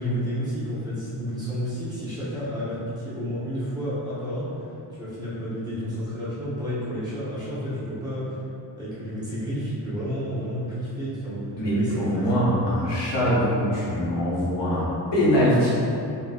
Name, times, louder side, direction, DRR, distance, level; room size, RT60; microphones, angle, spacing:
voice 1, 0.0-4.7 4.9-8.4 8.8-12.2, equal, 10° right, -12 dB, 1.1 m, -30 dB
voice 2, 11.6-14.8 15.1-15.7, equal, 75° left, -9 dB, 1.4 m, -22 dB
4.2 x 4.1 x 2.5 m, 2.7 s
wide cardioid pair, 165°, 42 cm